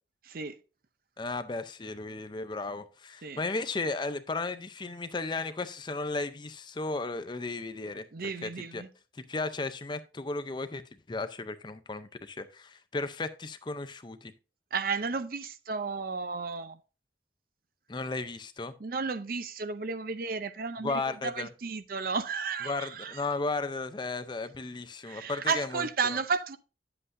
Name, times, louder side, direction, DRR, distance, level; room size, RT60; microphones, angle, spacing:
voice 1, 0.2-0.6 3.2-3.4 8.1-8.9 14.7-16.8 18.8-23.2 25.0-26.6, right 5 dB, 55° right, 0.6 m, -33 dB
voice 2, 1.2-8.8 9.2-14.3 17.9-18.7 20.8-21.5 22.7-26.2, left 3 dB, 25° left, 0.5 m, -35 dB
9.6 x 7.8 x 2.6 m
head